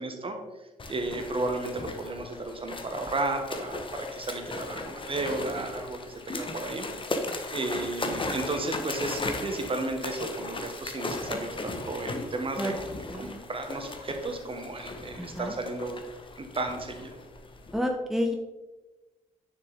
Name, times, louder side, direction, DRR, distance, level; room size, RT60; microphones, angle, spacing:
voice 1, 0.0-6.9 7.1-12.8 13.2-16.0 16.4-17.1, right 2 dB, 30° right, 5 dB, 1.7 m, -33 dB
sound 1, 0.8-17.8, left 2 dB, 30° left, 1.4 m, -37 dB
voice 2, 13.1-13.4 15.2-15.5 17.7-18.3, left 1 dB, ahead, 3 dB, 1.1 m, -30 dB
9.8 x 7.0 x 3.7 m, 1.2 s
figure-of-eight pair, 40°, 17 cm